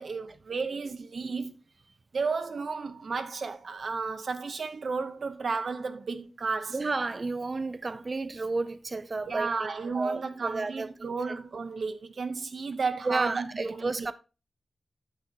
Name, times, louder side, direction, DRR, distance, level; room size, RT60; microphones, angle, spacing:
voice 1, 0.0-1.5 2.1-6.7 9.3-14.1, right 4 dB, 60° right, 0.8 m, -33 dB
voice 2, 6.7-10.9 13.0-14.1, right 3 dB, 35° right, 0.5 m, -32 dB
9.6 x 7.8 x 2.7 m
wide cardioid pair, 135°, 0 cm